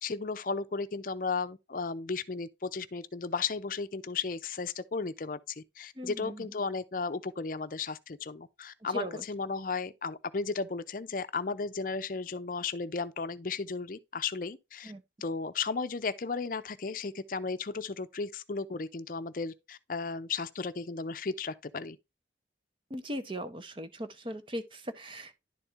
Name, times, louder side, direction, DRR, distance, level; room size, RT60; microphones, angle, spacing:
voice 1, 0.0-14.9 15.2-22.0, left 4 dB, 45° left, 0.5 m, -35 dB
voice 2, 6.0-6.5 8.9-9.2 14.8-15.0 22.9-25.4, equal, 30° right, 0.8 m, -38 dB
11.0 x 4.2 x 3.5 m
head